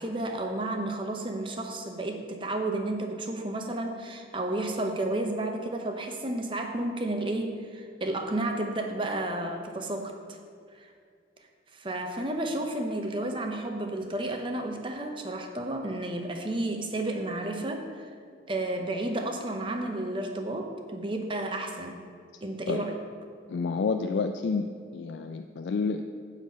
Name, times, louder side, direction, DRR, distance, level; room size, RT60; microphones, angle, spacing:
voice 1, 0.0-10.4 10.7-10.9 11.7-18.1 18.5-22.0 22.4-23.0, right 1 dB, 25° right, 4 dB, 0.7 m, -32 dB
voice 2, 23.5-26.1, left 4 dB, 70° left, 6 dB, 0.3 m, -29 dB
9.5 x 4.1 x 7.3 m, 2.2 s
head